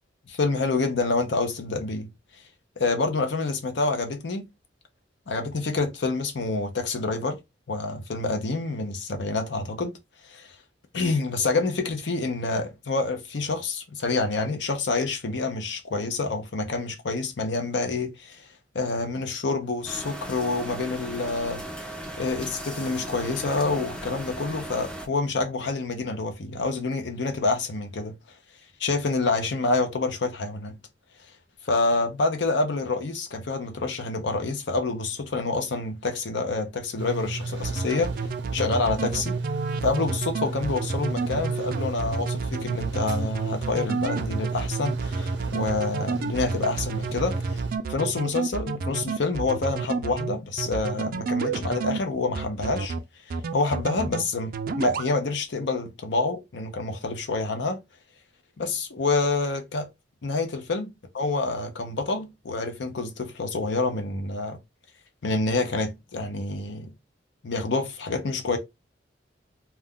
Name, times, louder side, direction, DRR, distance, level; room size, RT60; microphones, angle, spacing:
voice 1, 0.3-2.1 2.8-4.4 5.3-7.4 7.7-10.0 10.2-10.5 10.9-18.5 18.7-21.6 22.2-28.2 28.8-30.8 31.6-38.3 38.5-39.4 39.8-47.6 47.9-52.9 53.5-57.8 58.6-59.9 60.2-60.9 61.1-64.6 65.2-66.9 67.4-68.6, left 3 dB, 70° left, 0.6 m, -27 dB
sound 1, 19.9-25.1, right 1 dB, 5° left, 0.4 m, -37 dB
sound 2, 37.0-47.8, right 3 dB, 90° right, 0.7 m, -33 dB
sound 3, 37.6-52.0 52.3-53.0 53.3-54.2 54.5-55.1, right 4 dB, 55° right, 0.4 m, -30 dB
2.4 x 2.2 x 3.5 m
head